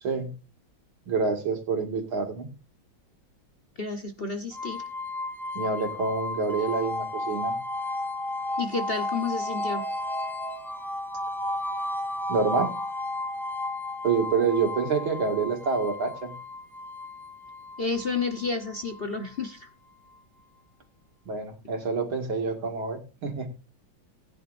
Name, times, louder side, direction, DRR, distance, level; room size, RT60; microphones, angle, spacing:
voice 1, 0.0-0.3 1.1-2.5 5.5-7.5 12.3-12.7 14.0-16.3 21.3-23.5, right 5 dB, 80° right, 4 dB, 2.9 m, -27 dB
voice 2, 3.8-4.8 8.6-9.8 17.8-19.7, left 4 dB, 40° left, 5 dB, 0.9 m, -30 dB
sound 1, 4.5-19.5, left 2 dB, ahead, 1.0 m, -33 dB
19.5 x 10.0 x 2.6 m, 0.31 s
omnidirectional pair, 2.2 m